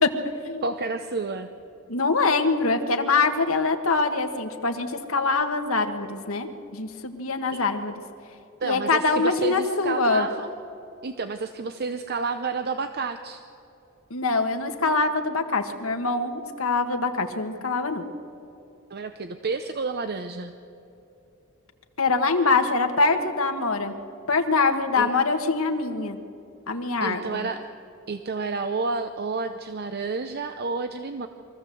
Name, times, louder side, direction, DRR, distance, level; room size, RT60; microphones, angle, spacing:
voice 1, 0.0-0.6 1.9-6.5 6.7-8.0 8.6-10.3 14.1-18.0 22.0-23.9 24.3-26.2 26.7-27.5, left 3 dB, 75° left, 6 dB, 1.5 m, -24 dB
voice 2, 0.6-1.5 7.5-7.6 8.6-10.5 11.0-13.4 18.9-20.5 25.0-25.1 27.0-27.6 28.1-31.3, right 4 dB, 50° right, 8 dB, 0.7 m, -30 dB
23.5 x 14.5 x 7.7 m, 2.9 s
head